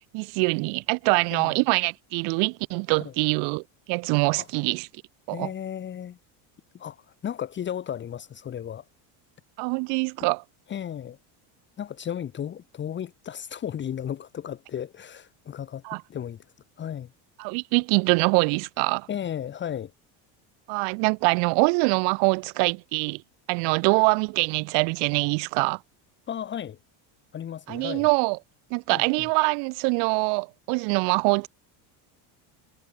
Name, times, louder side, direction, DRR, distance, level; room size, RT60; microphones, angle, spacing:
voice 1, 0.1-4.9 5.3-5.5 9.6-10.4 15.8-16.0 17.4-19.1 20.7-23.2 23.5-25.8 27.7-28.4 28.7-31.5, right 35 dB, 60° right, 1.4 m, -24 dB
voice 2, 5.3-6.2 6.7-8.9 10.7-11.2 11.8-15.8 16.1-16.4 16.8-17.1 19.1-19.9 26.3-26.8 27.3-28.1 28.9-29.0, left 9 dB, 25° left, 2.2 m, -34 dB
cardioid pair, 180°, 48 cm